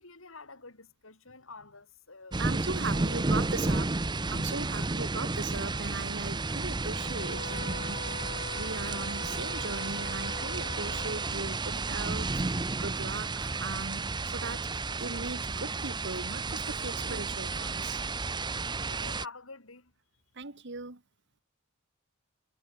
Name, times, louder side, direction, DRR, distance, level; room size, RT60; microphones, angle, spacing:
voice 1, 0.0-2.4 2.9-3.0 4.5-4.9 18.9-19.9, left 4 dB, 70° left, 4.2 m, -48 dB
sound 1, 2.3-19.3, right 3 dB, 20° right, 0.8 m, -32 dB
voice 2, 2.4-4.0 4.3-8.2 8.5-12.4 12.8-18.4 20.3-21.0, right 3 dB, 60° right, 1.9 m, -38 dB
sound 2, 6.8-11.4, left 4 dB, 55° left, 2.6 m, -42 dB
head